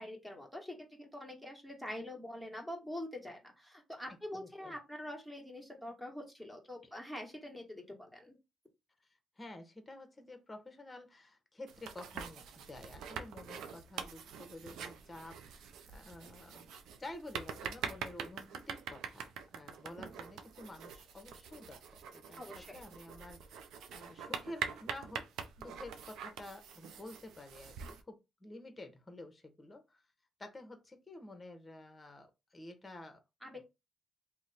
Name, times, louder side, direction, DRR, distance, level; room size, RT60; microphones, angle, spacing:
voice 1, 0.0-8.4 22.4-22.8 33.4-33.6, left 1 dB, 5° right, 1 dB, 1.3 m, -45 dB
voice 2, 4.3-4.8 6.8-6.9 9.4-16.7 17.0-21.8 22.1-23.4 23.9-25.3 25.6-30.0 30.4-33.2 33.5-33.6, left 1 dB, 20° left, 7 dB, 0.9 m, -50 dB
sound 1, 11.7-28.0, right 7 dB, 80° right, 0.5 m, -45 dB
3.0 x 2.1 x 4.0 m, 0.24 s
cardioid pair, 90°, 0 cm